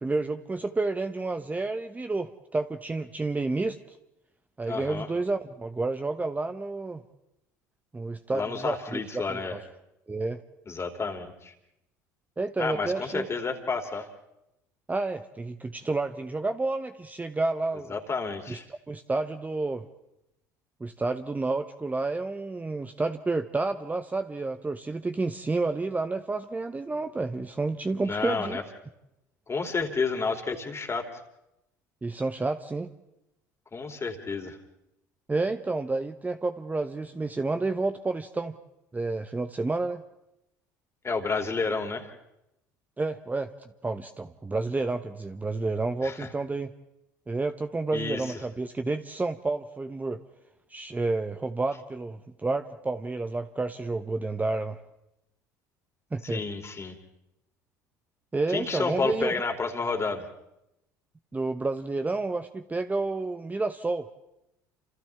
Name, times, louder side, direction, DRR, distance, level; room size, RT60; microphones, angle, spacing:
voice 1, 0.0-3.8 4.6-7.0 7.9-9.0 9.3-9.6 10.1-10.4 12.4-13.2 14.9-17.9 18.5-18.6 18.9-19.9 20.8-28.6 32.0-32.9 35.3-38.5 38.9-40.0 43.0-43.5 43.8-46.7 47.3-50.2 50.7-54.8 56.1-56.4 58.3-59.3 61.3-64.1, right 3 dB, 15° right, 8 dB, 0.9 m, -30 dB
voice 2, 4.7-5.1 8.3-9.5 10.7-11.5 12.6-14.1 17.9-18.7 28.0-28.6 29.5-31.1 33.7-34.6 41.0-42.1 46.0-46.3 47.9-48.4 56.2-56.9 58.5-60.2, left 4 dB, 30° left, 5 dB, 3.0 m, -30 dB
29.5 x 27.0 x 3.5 m, 0.87 s
hypercardioid pair, 65°, 10 cm